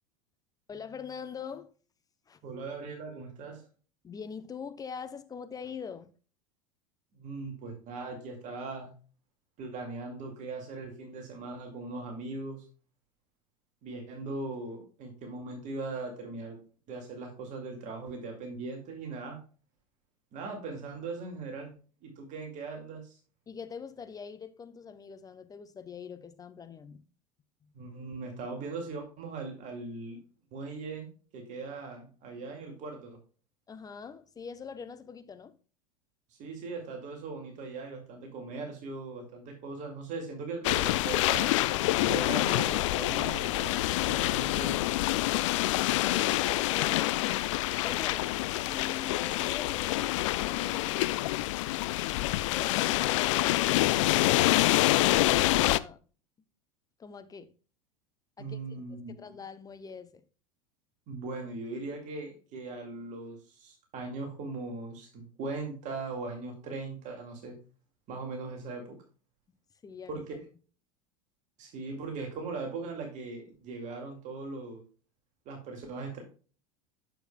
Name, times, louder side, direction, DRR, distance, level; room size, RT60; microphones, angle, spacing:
voice 1, 0.7-1.7 2.3-2.4 4.0-6.1 23.5-27.0 27.6-27.7 33.7-35.6 45.5-47.2 47.8-48.3 48.7-50.1 50.4-51.0 57.0-57.5 58.4-60.2 69.8-70.2, left 6 dB, 20° left, 0.7 m, -44 dB
voice 2, 2.4-3.6 7.1-8.9 9.6-12.6 13.8-16.6 16.9-19.4 20.3-21.7 22.0-23.2 27.7-30.2 30.5-31.1 31.3-33.2 36.4-41.5 42.1-43.8 44.1-44.8 58.4-59.1 61.1-67.5 68.1-69.0 70.1-70.3 71.6-74.8 75.5-76.2, right 3 dB, 45° right, 2.2 m, -39 dB
sound 1, 40.6-55.8, left 17 dB, 60° left, 0.4 m, -27 dB
9.0 x 7.0 x 2.2 m
figure-of-eight pair, 80°, 18 cm